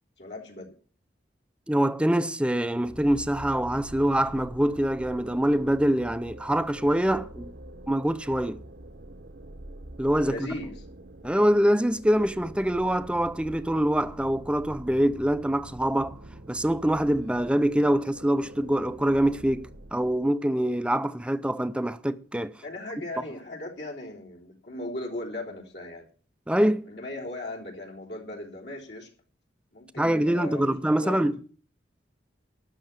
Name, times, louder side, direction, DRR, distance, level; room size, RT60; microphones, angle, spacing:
voice 1, 0.2-0.7 10.2-10.9 22.6-26.1 26.9-29.1 29.7-31.2, left 1 dB, 65° left, 3.6 m, -38 dB
voice 2, 1.7-7.5 7.9-8.6 10.0-10.5 11.2-16.2 16.5-22.5 23.2-23.3 26.5-26.9 30.0-31.4, right 1 dB, 5° right, 0.6 m, -24 dB
sound 1, 2.8-20.3, right 1 dB, 65° right, 1.1 m, -45 dB
12.0 x 6.1 x 9.4 m
head